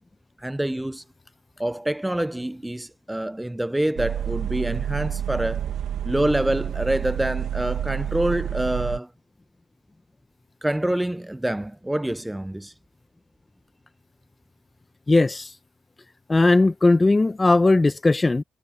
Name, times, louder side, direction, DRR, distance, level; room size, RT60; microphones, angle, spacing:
voice 1, 0.4-1.0 1.6-5.7 6.0-9.1 10.6-12.7, right 1 dB, 5° right, 0.5 m, -26 dB
sound 1, 4.0-9.0, right 10 dB, 75° right, 1.8 m, -29 dB
voice 2, 15.1-15.5 16.3-18.4, left 2 dB, 20° left, 1.1 m, -18 dB
cardioid pair, 90°, 0 cm